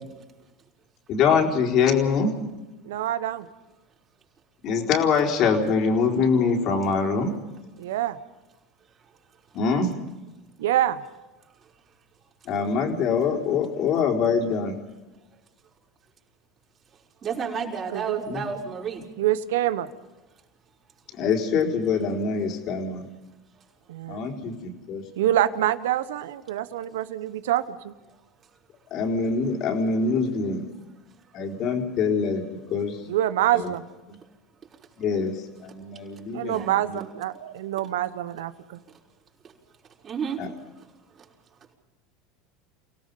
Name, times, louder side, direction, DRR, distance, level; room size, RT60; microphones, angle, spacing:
voice 1, 1.1-2.3 4.6-7.3 9.5-9.9 12.5-14.8 18.3-18.4 21.1-23.0 24.1-25.0 28.9-30.6 31.3-32.4 32.7-33.0 33.5-33.7 34.1-34.2 35.0-35.3 35.6-37.0 40.4-40.5, left 5 dB, 55° left, 1 dB, 4.3 m, -24 dB
voice 2, 2.8-3.5 7.8-8.2 10.6-11.0 17.9-18.2 19.2-19.9 23.9-24.3 25.2-27.9 33.1-33.8 36.3-38.8, right 12 dB, 80° right, 14 dB, 1.1 m, -26 dB
voice 3, 17.2-19.0 36.5-36.7 40.0-40.4, right 6 dB, 35° right, -2 dB, 5.5 m, -31 dB
29.5 x 18.0 x 5.5 m, 1.1 s
hypercardioid pair, 90°, 0 cm